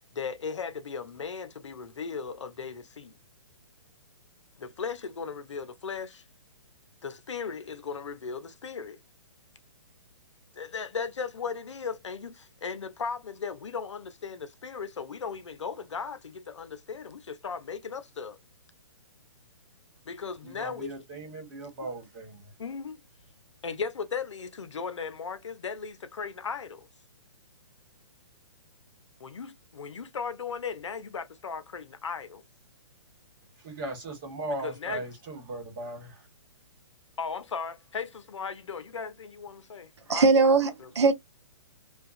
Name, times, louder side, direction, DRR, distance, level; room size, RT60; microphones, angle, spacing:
voice 1, 0.1-3.2 4.6-6.2 7.0-9.0 10.5-18.4 20.0-20.9 22.6-23.0 23.6-26.9 29.2-32.4 34.6-35.0 37.2-40.5 40.8-40.9, left 5 dB, 80° left, 0.6 m, -37 dB
voice 2, 20.4-22.5 33.6-36.2, right 2 dB, 40° right, 1.5 m, -38 dB
voice 3, 40.1-41.1, right 4 dB, 65° right, 0.6 m, -20 dB
2.7 x 2.3 x 2.4 m
hypercardioid pair, 130°, 15 cm